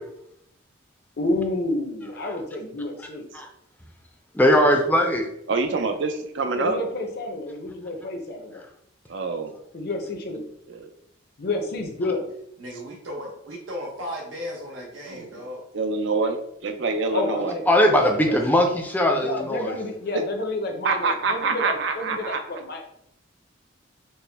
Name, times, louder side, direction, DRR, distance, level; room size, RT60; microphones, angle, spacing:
voice 1, 1.2-3.3 6.5-8.6 9.7-10.4 11.4-12.3 17.1-18.4 19.2-22.9, left 2 dB, 55° left, 3 dB, 0.6 m, -29 dB
voice 2, 4.3-5.3 17.7-19.7, left 1 dB, 10° left, 3 dB, 0.5 m, -19 dB
voice 3, 5.5-6.8 9.1-9.5 10.7-10.9 15.1-15.3 15.7-17.5 20.1-20.2 20.8-22.4, right 4 dB, 65° right, 6 dB, 0.5 m, -26 dB
voice 4, 12.6-15.6, equal, 85° right, -3 dB, 0.8 m, -35 dB
4.2 x 2.1 x 3.4 m, 0.76 s
head